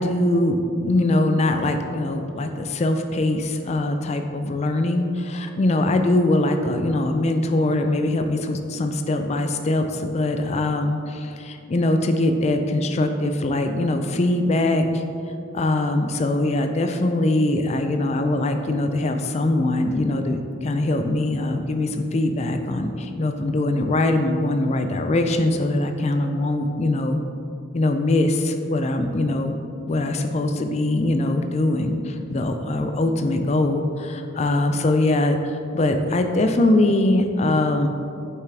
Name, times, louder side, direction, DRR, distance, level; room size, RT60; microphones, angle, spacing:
voice 1, 0.0-15.0 15.5-27.2 27.7-29.6 29.9-37.9, left 2 dB, 35° left, 6 dB, 0.4 m, -22 dB
6.9 x 5.7 x 3.3 m, 2.6 s
head